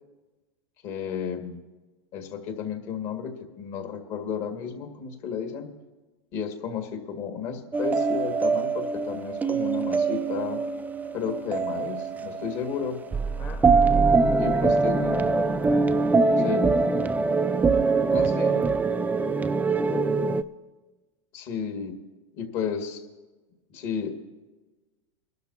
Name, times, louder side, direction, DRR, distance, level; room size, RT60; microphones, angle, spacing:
voice 1, 0.8-1.6 2.1-5.7 6.3-10.6 11.1-13.0 14.4-15.2 16.4-16.7 18.1-18.7 21.3-21.9 22.3-23.0 23.7-24.1, left 7 dB, 50° left, 4 dB, 2.2 m, -32 dB
sound 1, 7.7-20.4, right 4 dB, 10° right, 0.3 m, -23 dB
voice 2, 13.4-13.8 14.4-15.9 16.3-17.1 19.9-20.2, left 3 dB, 15° left, 3 dB, 1.0 m, -35 dB
23.5 x 12.0 x 2.9 m, 1.2 s
hypercardioid pair, 115°, 16 cm